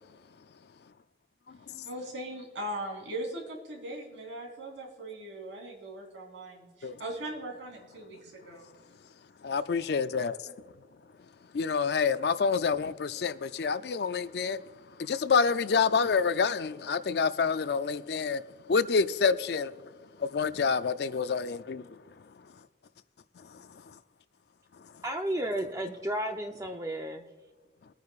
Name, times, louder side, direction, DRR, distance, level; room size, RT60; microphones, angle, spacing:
voice 1, 1.9-8.7 10.4-10.5, right 1 dB, 85° right, 3.6 m, -39 dB
voice 2, 9.4-10.3 11.5-14.6 15.0-18.4 18.7-19.7 20.2-21.9, left 5 dB, 60° left, 0.4 m, -27 dB
voice 3, 25.0-27.2, right 1 dB, 20° right, 0.6 m, -33 dB
22.0 x 9.4 x 2.4 m
head